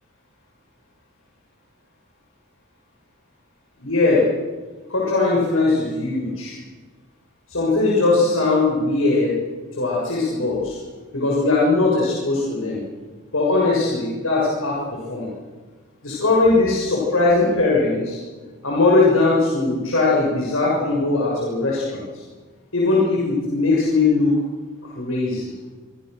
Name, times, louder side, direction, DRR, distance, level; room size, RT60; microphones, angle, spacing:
voice 1, 3.8-4.2 4.9-6.6 7.5-9.3 9.8-10.8 11.1-12.8 13.3-15.3 16.0-18.2 18.6-22.0 22.7-24.4 24.8-25.5, left 3 dB, 85° left, -4 dB, 6.4 m, -20 dB
25.0 x 25.0 x 6.6 m, 1.4 s
head